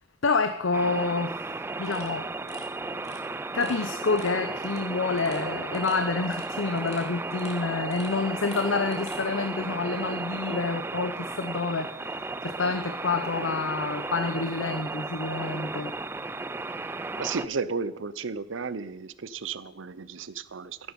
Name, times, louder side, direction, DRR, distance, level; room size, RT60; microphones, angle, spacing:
voice 1, 0.2-1.4 1.8-2.3 3.5-15.9, left 4 dB, 75° left, 8 dB, 0.8 m, -28 dB
sound 1, 0.7-17.5, right 3 dB, 10° right, 0.4 m, -34 dB
sound 2, 1.8-9.3, left 3 dB, 35° left, 2.4 m, -52 dB
Guitar, 2.0-9.7, right 1 dB, 45° right, 2.4 m, -56 dB
voice 2, 16.8-20.8, right 5 dB, 70° right, 16 dB, 0.7 m, -34 dB
13.5 x 11.0 x 5.3 m, 0.88 s
head